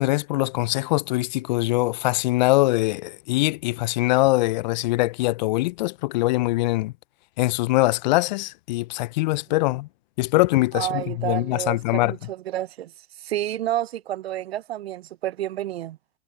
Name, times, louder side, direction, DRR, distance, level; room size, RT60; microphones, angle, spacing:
voice 1, 0.0-6.9 7.4-9.9 10.2-12.1, left 20 dB, 40° left, 0.6 m, -22 dB
voice 2, 10.7-12.9 13.2-16.0, right 13 dB, 60° right, 0.9 m, -30 dB
hypercardioid pair, 120°, 34 cm